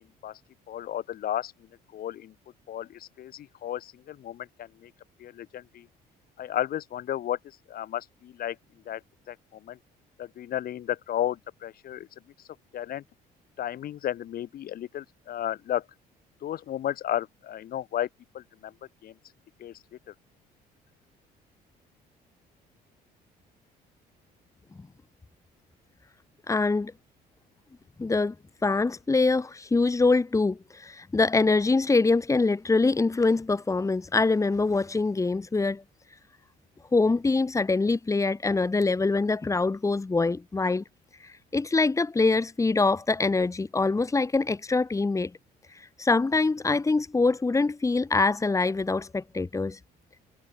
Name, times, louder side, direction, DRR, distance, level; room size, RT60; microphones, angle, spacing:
voice 1, 0.7-1.5 1.9-2.3 2.7-4.9 5.2-5.9 6.4-7.4 7.7-8.6 8.9-9.0 9.3-9.8 10.2-12.1 12.7-13.0 13.6-15.8 16.4-18.1 18.3-18.7 19.0-19.1 19.6-19.7, left 11 dB, 60° left, 6.0 m, -33 dB
voice 2, 26.5-26.9 28.0-28.3 28.6-35.8 36.9-40.8 41.2-45.3 45.7-49.8, left 3 dB, 20° left, 3.3 m, -24 dB
cardioid pair, 110°, 17 cm